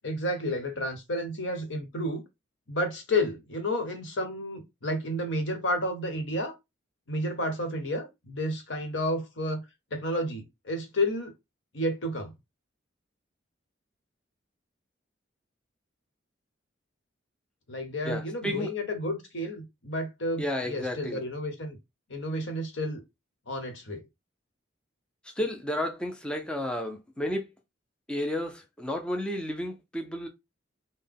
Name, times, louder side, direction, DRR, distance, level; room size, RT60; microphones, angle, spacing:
voice 1, 0.0-2.2 2.7-6.6 7.1-9.6 9.9-11.3 11.7-12.3 17.7-21.8 22.1-23.0 23.5-24.0, left 1 dB, 70° left, 1.0 m, -31 dB
voice 2, 18.1-18.7 20.4-21.2 25.2-27.5 28.1-30.3, left 1 dB, 5° left, 0.4 m, -32 dB
3.9 x 2.1 x 3.5 m
head